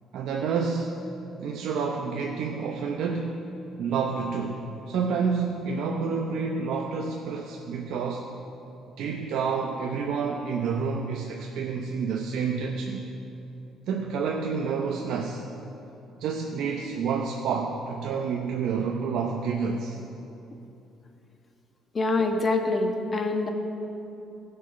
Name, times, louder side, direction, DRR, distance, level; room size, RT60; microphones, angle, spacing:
voice 1, 0.1-1.0 1.4-3.5 3.8-8.3 9.0-13.0 13.9-15.4 16.2-20.0, right 5 dB, 75° right, 1 dB, 0.7 m, -29 dB
voice 2, 21.9-23.5, left 2 dB, 35° left, 4 dB, 1.2 m, -25 dB
16.0 x 5.6 x 5.6 m, 2.8 s
supercardioid pair, 80°, 0 cm